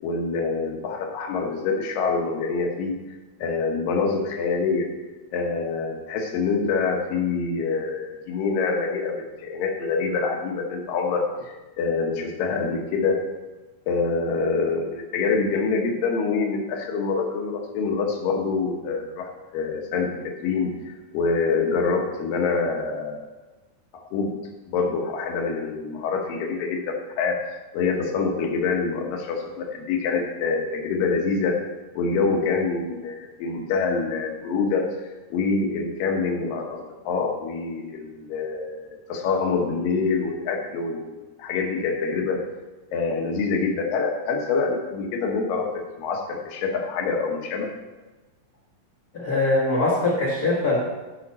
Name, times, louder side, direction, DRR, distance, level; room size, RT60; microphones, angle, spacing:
voice 1, 0.0-2.9 3.4-4.9 5.3-13.2 13.9-23.2 24.1-24.3 24.7-27.4 27.7-31.6 32.0-41.1 41.4-42.4 42.9-47.7, left 4 dB, 75° left, 2 dB, 2.8 m, -26 dB
voice 2, 49.1-50.8, left 2 dB, 50° left, -4 dB, 1.1 m, -22 dB
13.0 x 5.8 x 4.3 m, 1.2 s
omnidirectional pair, 4.1 m